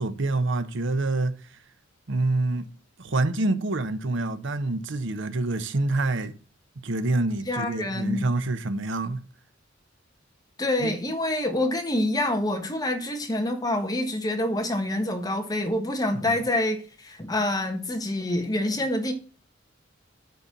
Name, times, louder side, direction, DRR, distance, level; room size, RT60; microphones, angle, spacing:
voice 1, 0.0-1.4 2.1-2.7 3.0-6.3 6.8-9.2 10.8-10.9 16.1-16.4, right 2 dB, 65° right, 0.9 m, -26 dB
voice 2, 7.5-8.2 10.6-19.1, left 1 dB, 20° left, 1.4 m, -26 dB
9.1 x 4.3 x 7.3 m
head